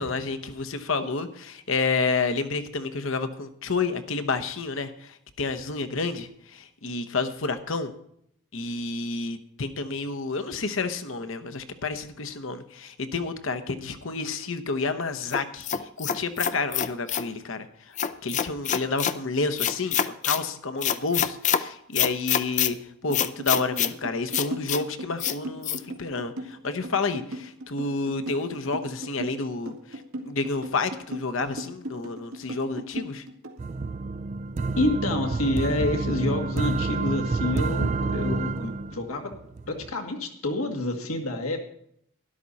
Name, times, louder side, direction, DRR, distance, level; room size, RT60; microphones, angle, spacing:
voice 1, 0.0-7.9 8.5-15.7 16.0-18.0 18.2-22.8 23.0-33.2, left 4 dB, 65° left, 10 dB, 1.0 m, -30 dB
sound 1, 15.3-17.3 18.0-19.2 19.6-20.4 20.8-21.6 21.9-22.7 23.1-23.9 24.3-24.8 25.2-25.4 25.6-25.8, left 9 dB, 35° left, 0.5 m, -26 dB
sound 2, 23.1-33.6, right 1 dB, 85° right, 2.0 m, -37 dB
sound 3, 33.6-39.9, right 3 dB, 35° right, 0.4 m, -28 dB
voice 2, 34.8-39.3 39.7-41.6, left 2 dB, 90° left, 4 dB, 1.9 m, -28 dB
12.5 x 11.5 x 4.1 m, 0.70 s
head